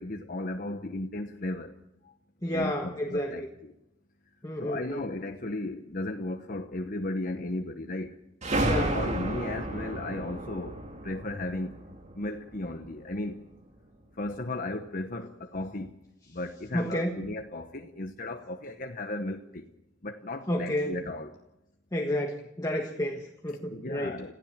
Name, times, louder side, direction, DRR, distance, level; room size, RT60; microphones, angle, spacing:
voice 1, 0.0-1.7 2.0-2.1 2.4-3.7 4.6-8.2 8.7-10.8 11.0-11.8 12.1-13.4 14.2-15.9 16.3-19.7 20.0-21.3 23.7-24.3, left 2 dB, 50° left, 5 dB, 1.1 m, -35 dB
voice 2, 2.4-3.5 4.4-5.0 8.5-9.0 16.7-17.2 20.5-21.0 21.9-24.1, equal, 20° left, 2 dB, 1.5 m, -31 dB
sound 1, 8.4-12.9, right 1 dB, 40° right, 2.7 m, -32 dB
27.5 x 15.5 x 7.5 m, 0.89 s
head